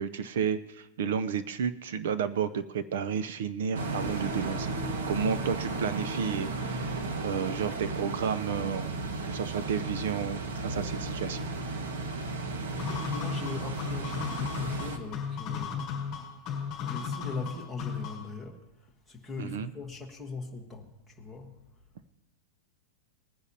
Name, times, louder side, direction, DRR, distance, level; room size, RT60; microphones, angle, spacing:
voice 1, 0.0-4.7 5.1-9.0 9.2-11.5 19.4-19.7, right 7 dB, 65° right, 15 dB, 0.6 m, -32 dB
sound 1, 3.7-15.0, right 3 dB, 80° right, 1.5 m, -34 dB
voice 2, 12.7-16.1 16.8-21.5, left 4 dB, ahead, 3 dB, 1.3 m, -40 dB
sound 2, 12.8-18.3, left 7 dB, 20° left, 3.9 m, -35 dB
21.0 x 10.0 x 2.8 m, 0.92 s
supercardioid pair, 175°, 0 cm